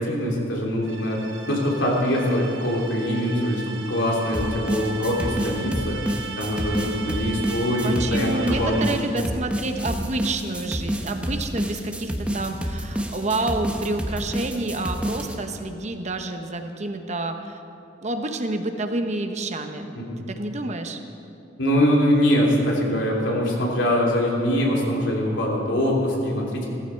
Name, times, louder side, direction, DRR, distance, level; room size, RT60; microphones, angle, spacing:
voice 1, 0.0-8.9 19.9-20.2 21.6-26.7, equal, 85° left, -3 dB, 3.1 m, -23 dB
sound 1, 0.8-9.3, right 4 dB, 70° right, 1.1 m, -37 dB
sound 2, 4.3-15.4, equal, 5° right, 1.0 m, -28 dB
voice 2, 7.8-17.6 18.0-19.9 20.3-21.0, right 2 dB, 40° right, 6 dB, 0.9 m, -29 dB
16.0 x 14.5 x 4.6 m, 2.7 s
head